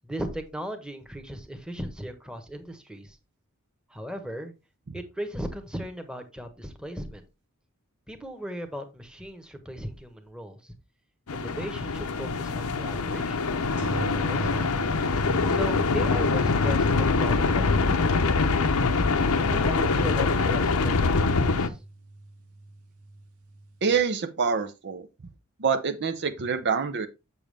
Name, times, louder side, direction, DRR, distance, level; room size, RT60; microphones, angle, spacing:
voice 1, 0.0-3.2 3.9-4.5 4.9-7.2 8.1-10.7 11.3-13.5 13.9-14.7 15.5-18.8 19.4-21.8, equal, 5° right, 1.2 m, -37 dB
sound 1, 11.3-21.7, left 4 dB, 85° left, 0.8 m, -24 dB
sound 2, 13.8-23.6 23.9-24.0, right 2 dB, 90° right, 1.5 m, -38 dB
voice 2, 23.8-25.1 25.6-27.1, right 5 dB, 55° right, 0.7 m, -26 dB
7.3 x 7.0 x 3.4 m
head